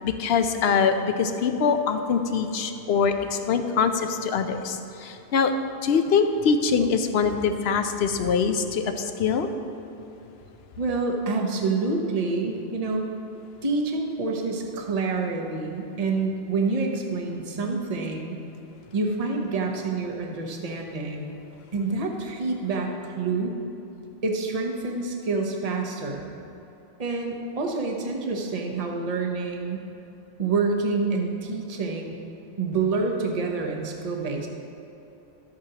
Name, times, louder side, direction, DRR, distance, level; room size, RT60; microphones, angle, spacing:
voice 1, 0.0-5.5 5.8-9.5, left 6 dB, 70° left, 8 dB, 0.9 m, -23 dB
voice 2, 10.8-13.0 13.6-18.4 18.9-21.4 21.7-23.5 24.2-26.3 27.0-29.8 30.4-32.2 32.6-34.5, right 3 dB, 40° right, 1 dB, 0.9 m, -27 dB
12.5 x 8.7 x 2.9 m, 3.0 s
omnidirectional pair, 1.1 m